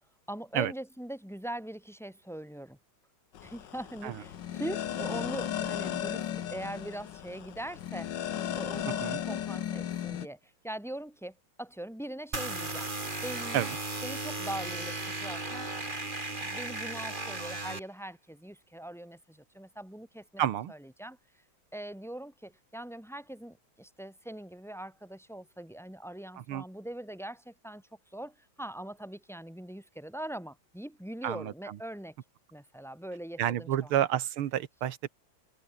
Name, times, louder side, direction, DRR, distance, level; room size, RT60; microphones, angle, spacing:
voice 1, 0.3-2.8 3.4-8.1 8.5-12.9 13.2-13.7 14.0-20.4 20.7-21.2 21.7-32.1 32.5-33.9, right 1 dB, ahead, 1.9 m, -42 dB
sound 1, 3.3-10.3, left 10 dB, 60° left, 1.6 m, -35 dB
sound 2, 12.3-17.8, right 2 dB, 20° right, 3.5 m, -36 dB
voice 2, 20.4-20.7 26.4-26.6 31.2-31.8 33.4-35.1, right 11 dB, 90° right, 2.1 m, -30 dB
omnidirectional pair, 2.3 m